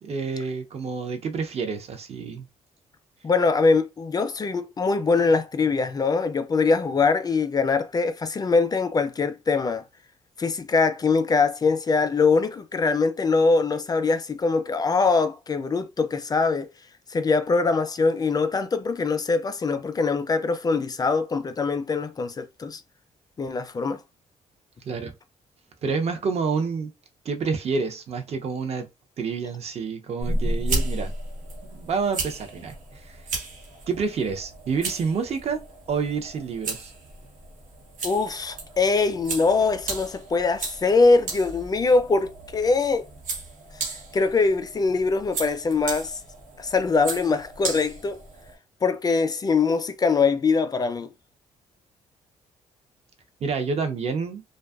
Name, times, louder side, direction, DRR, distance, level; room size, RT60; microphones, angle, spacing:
voice 1, 0.0-2.5 24.8-25.1 25.8-26.9 27.2-28.9 29.2-31.1 31.6-33.2 33.9-36.9 53.4-54.4, right 5 dB, 50° right, 0.6 m, -28 dB
voice 2, 3.2-9.8 10.4-16.7 17.1-22.8 23.4-24.0 38.0-43.1 43.8-46.2 46.6-48.2 48.8-51.1, left 4 dB, 30° left, 0.4 m, -23 dB
sound 1, 30.2-48.5, right 2 dB, 75° right, 0.9 m, -34 dB
2.5 x 2.3 x 2.3 m
cardioid pair, 95°, 13 cm